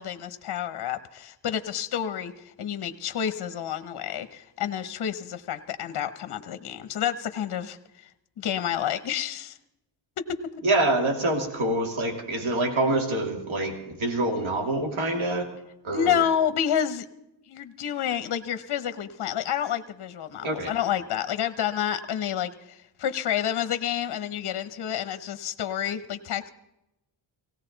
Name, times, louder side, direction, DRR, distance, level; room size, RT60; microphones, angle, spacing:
voice 1, 0.0-8.1 8.4-9.6 10.2-10.4 15.9-17.1 17.5-26.5, left 9 dB, 55° left, 11 dB, 0.9 m, -29 dB
voice 2, 10.6-15.5 15.8-16.2 20.4-20.7, right 2 dB, 80° right, 3 dB, 2.6 m, -26 dB
18.0 x 17.0 x 3.9 m, 0.88 s
wide cardioid pair, 150°, 48 cm